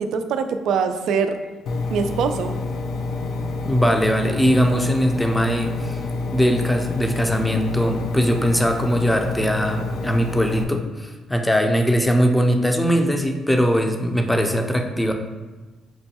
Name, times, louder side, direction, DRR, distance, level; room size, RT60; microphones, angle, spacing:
voice 1, 0.0-1.4 1.9-2.6, right 6 dB, 75° right, 7 dB, 0.3 m, -23 dB
Engine, 1.7-10.6, left 3 dB, 75° left, 0.3 m, -27 dB
voice 2, 3.7-6.0 6.3-15.1, equal, 5° left, 4 dB, 0.5 m, -20 dB
6.0 x 2.2 x 2.8 m, 1.2 s
cardioid pair, 90°, 0 cm